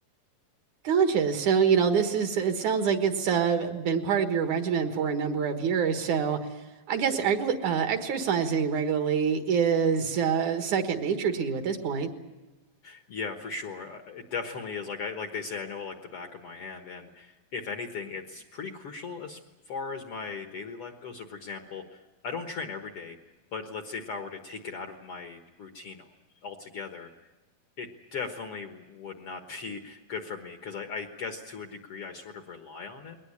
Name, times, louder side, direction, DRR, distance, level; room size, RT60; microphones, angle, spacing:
voice 1, 0.8-6.4 6.9-12.1, right 6 dB, 65° right, 6 dB, 2.8 m, -25 dB
voice 2, 12.8-19.4 19.7-23.2 23.5-26.0 26.4-27.1 27.8-33.2, left 5 dB, 55° left, 5 dB, 1.8 m, -38 dB
22.0 x 19.0 x 9.8 m, 1.1 s
omnidirectional pair, 4.0 m